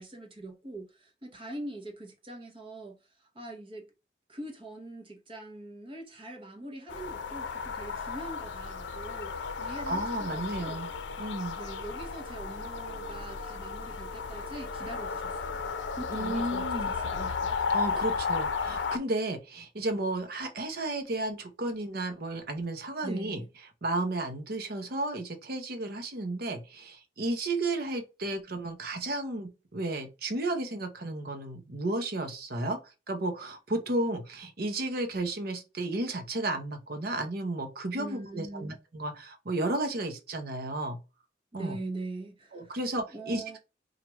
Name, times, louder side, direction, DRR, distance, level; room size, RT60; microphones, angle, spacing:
voice 1, 0.0-3.9 4.3-10.8 11.6-15.6 15.9-17.5 23.0-23.5 38.0-38.8 41.5-42.8 43.1-43.6, right 2 dB, 30° right, 0.9 m, -42 dB
sound 1, 6.9-19.0, left 5 dB, 80° left, 0.5 m, -34 dB
voice 2, 9.9-10.9 11.2-11.6 16.1-16.9 17.7-23.4 23.8-32.8 33.1-41.0 41.5-41.8 42.5-43.6, right 2 dB, 55° right, 0.8 m, -33 dB
4.6 x 2.5 x 3.0 m
head